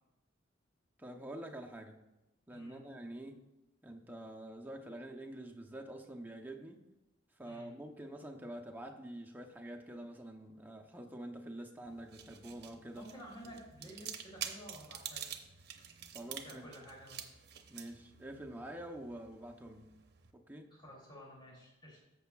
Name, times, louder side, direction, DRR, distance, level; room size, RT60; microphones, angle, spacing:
voice 1, 1.0-2.0 2.5-3.4 3.8-6.8 7.3-13.1 16.1-16.7 17.7-19.9 20.3-20.7, right 1 dB, 10° right, 2 dB, 0.7 m, -47 dB
voice 2, 2.5-2.8 7.5-7.7 12.9-15.3 16.4-17.3 20.7-22.0, equal, 25° left, -3 dB, 2.7 m, -52 dB
sound 1, 11.8-20.3, right 9 dB, 55° right, 0.8 m, -48 dB
14.0 x 6.9 x 2.3 m, 0.96 s
head